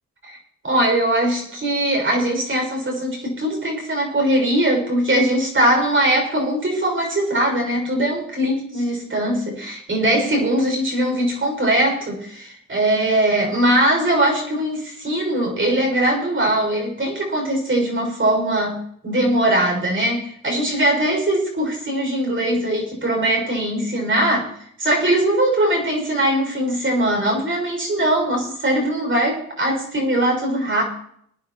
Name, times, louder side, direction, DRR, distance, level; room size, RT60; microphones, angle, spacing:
voice 1, 0.6-24.5 24.8-30.8, right 1 dB, 35° right, 0 dB, 6.5 m, -21 dB
23.0 x 9.5 x 3.1 m, 0.68 s
cardioid pair, 80°, 35 cm